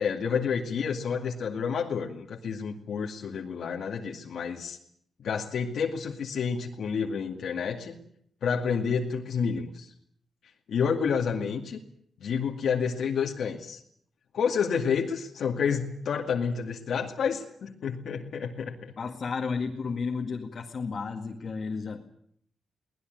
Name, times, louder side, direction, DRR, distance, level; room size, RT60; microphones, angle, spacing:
voice 1, 0.0-4.8 5.2-8.0 8.4-9.9 10.7-11.8 12.2-13.8 14.3-18.9, left 6 dB, 65° left, 0 dB, 2.2 m, -29 dB
voice 2, 19.0-22.0, left 5 dB, 40° left, 0 dB, 2.1 m, -32 dB
22.5 x 19.0 x 9.3 m, 0.68 s
wide cardioid pair, 160°, 0 cm